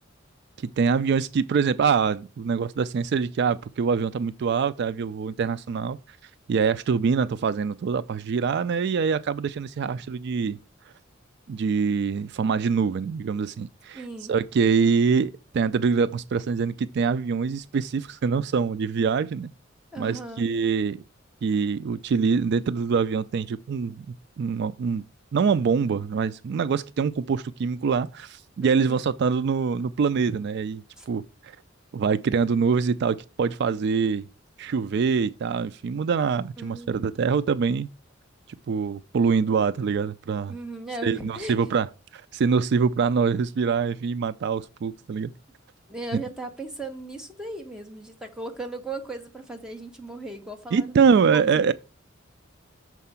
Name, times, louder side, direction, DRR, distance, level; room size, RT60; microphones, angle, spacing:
voice 1, 0.6-6.0 6.5-10.6 11.5-14.0 14.3-19.5 20.0-21.0 21.4-24.1 24.4-25.0 25.3-31.5 31.9-34.2 34.6-37.9 38.7-40.5 41.0-45.3 46.1-46.2 50.7-51.7, right 5 dB, 60° right, 0.3 m, -24 dB
voice 2, 13.9-14.3 19.9-20.5 28.7-29.0 31.0-31.1 36.6-36.9 40.5-41.6 45.9-51.6, right 2 dB, 5° right, 1.3 m, -37 dB
6.7 x 4.7 x 5.5 m
head